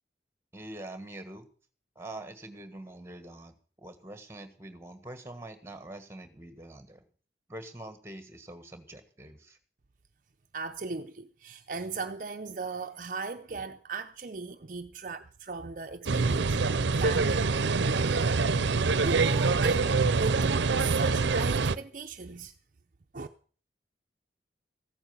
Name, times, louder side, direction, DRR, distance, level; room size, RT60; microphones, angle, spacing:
voice 1, 0.5-1.5 1.9-3.6 3.8-7.0 7.5-9.6, right 1 dB, 15° right, 1.5 m, -44 dB
voice 2, 10.5-17.5 17.8-18.4 18.9-20.4 20.8-22.5 23.1-23.3, right 4 dB, 45° right, 0.6 m, -37 dB
sound 1, 16.1-21.8, right 4 dB, 85° right, 0.7 m, -25 dB
15.0 x 8.8 x 7.0 m
head